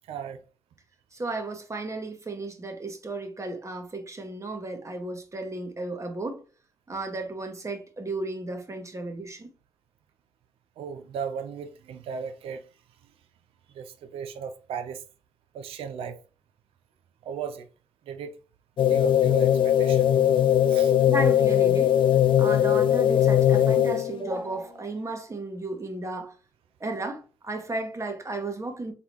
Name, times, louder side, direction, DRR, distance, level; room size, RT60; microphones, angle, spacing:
voice 1, 0.1-0.4 10.8-12.6 13.8-15.0 15.5-16.2 17.3-17.6 18.1-18.3 18.9-20.2 20.7-20.9, right 6 dB, 85° right, 0.6 m, -36 dB
voice 2, 1.1-6.4 6.9-9.5 21.1-21.9 22.4-26.3 26.8-28.9, right 2 dB, 30° right, 1.4 m, -34 dB
sound 1, 18.8-24.2, left 10 dB, 65° left, 0.4 m, -20 dB
4.0 x 3.5 x 2.9 m
supercardioid pair, 50°, 9 cm